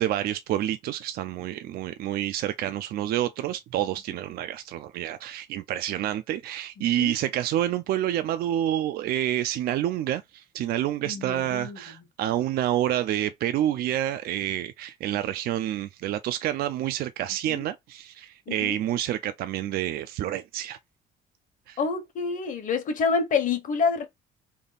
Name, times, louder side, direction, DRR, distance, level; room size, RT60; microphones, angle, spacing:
voice 1, 0.0-20.8 21.7-21.8, right 12 dB, 65° right, 0.4 m, -28 dB
voice 2, 6.8-7.1 11.0-12.0 17.5-17.6 18.5-18.8 21.8-24.0, left 5 dB, 50° left, 1.2 m, -28 dB
3.5 x 2.4 x 4.0 m
cardioid pair, 110°, 17 cm